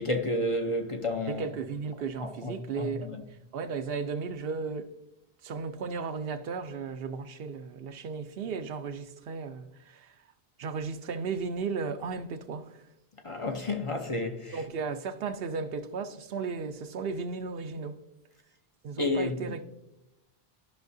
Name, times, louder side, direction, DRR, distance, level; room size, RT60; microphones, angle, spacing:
voice 1, 0.0-1.4 2.2-3.2 13.2-14.6 19.0-19.3, left 2 dB, 35° left, 0.6 m, -31 dB
voice 2, 1.3-3.2 3.5-4.9 5.4-10.2 10.6-12.8 14.5-18.0 18.8-19.6, right 5 dB, 70° right, 0.8 m, -35 dB
13.0 x 5.7 x 2.6 m
omnidirectional pair, 1.0 m